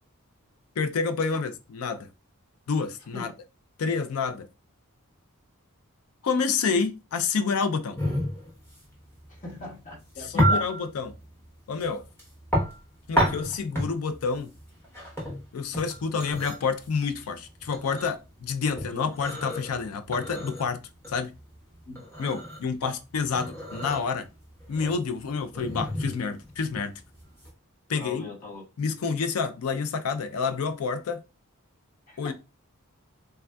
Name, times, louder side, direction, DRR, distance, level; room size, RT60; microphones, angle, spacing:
voice 1, 0.8-2.1 2.7-3.3 3.8-4.5 6.2-8.0 10.2-11.1 11.7-12.0 13.1-14.5 15.5-20.8 21.1-21.3 22.2-24.3 24.7-26.9 27.9-28.2 28.8-31.2 32.2-32.3, left 5 dB, 80° left, 0.4 m, -28 dB
sound 1, 8.0-27.5, equal, 10° left, 1.0 m, -31 dB
voice 2, 9.3-10.6 18.8-19.1 21.8-22.0 22.8-22.9 27.9-28.6 32.1-32.3, left 2 dB, 40° left, 1.3 m, -39 dB
3.3 x 2.5 x 2.2 m
head